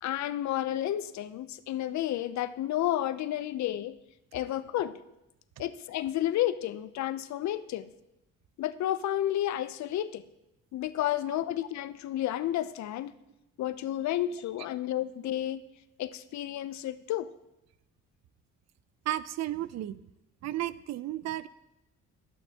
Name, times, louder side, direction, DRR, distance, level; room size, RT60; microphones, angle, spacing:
voice 1, 0.0-4.0 4.3-5.0 5.6-7.9 8.6-10.2 10.7-13.1 13.6-15.6 16.0-17.3, left 12 dB, 65° left, 14 dB, 0.5 m, -31 dB
voice 2, 19.1-20.0 20.4-21.5, right 13 dB, 60° right, 16 dB, 0.4 m, -33 dB
11.5 x 8.3 x 2.8 m, 0.90 s
cardioid pair, 90°, 30 cm